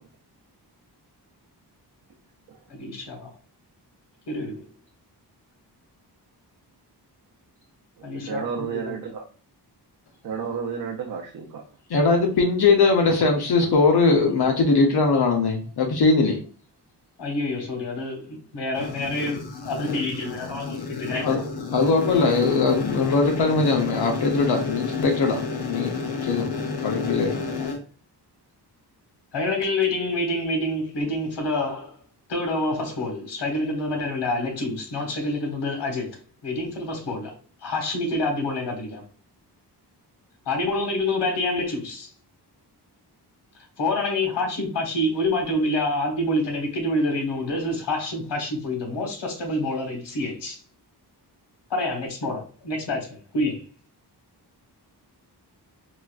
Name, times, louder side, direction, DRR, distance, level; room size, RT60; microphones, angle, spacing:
voice 1, 2.7-3.3 4.3-4.6 8.0-8.9 17.2-21.4 27.6-27.7 29.3-32.0 32.3-36.2 36.4-37.3 37.6-39.0 40.4-42.1 43.8-50.6 51.7-53.7, left 2 dB, 85° left, 1.2 m, -27 dB
voice 2, 8.0-9.2 10.2-11.6, right 6 dB, 55° right, 0.6 m, -32 dB
voice 3, 11.9-16.4 18.8-27.8, left 4 dB, 65° left, 0.7 m, -21 dB
4.0 x 2.3 x 2.3 m
wide cardioid pair, 135°, 41 cm